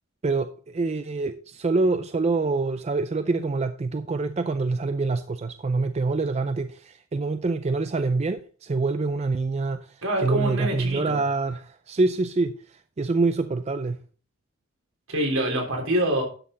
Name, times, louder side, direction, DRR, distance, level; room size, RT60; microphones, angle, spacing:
voice 1, 0.2-14.0, right 3 dB, 30° right, 0.4 m, -26 dB
voice 2, 10.0-11.2 15.1-16.2, right 1 dB, 70° right, 3.5 m, -25 dB
11.0 x 6.5 x 3.8 m
head